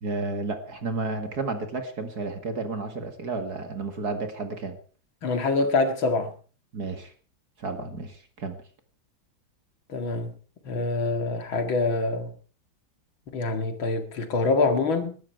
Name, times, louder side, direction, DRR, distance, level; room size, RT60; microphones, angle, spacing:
voice 1, 0.0-4.8 6.7-7.1 7.6-8.6, right 3 dB, 45° right, 2.4 m, -32 dB
voice 2, 5.2-6.3 9.9-10.3 10.6-12.3 13.3-15.2, left 3 dB, 65° left, 2.7 m, -25 dB
20.0 x 12.0 x 4.6 m
omnidirectional pair, 2.4 m